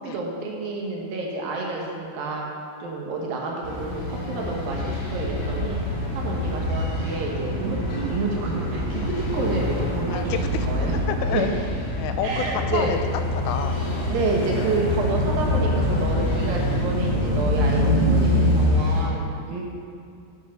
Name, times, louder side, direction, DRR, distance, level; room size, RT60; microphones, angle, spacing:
voice 1, 0.0-2.5 2.8-11.0 11.3-11.4 12.2-12.9 14.1-19.7, right 3 dB, 70° right, -2 dB, 2.9 m, -29 dB
sound 1, 3.6-19.1, left 1 dB, 60° left, 3.2 m, -25 dB
voice 2, 10.1-11.5 12.0-13.0 13.4-14.0 14.6-14.8, left 8 dB, 85° left, 8 dB, 2.4 m, -30 dB
8.1 x 7.0 x 6.5 m, 2.4 s
omnidirectional pair, 4.3 m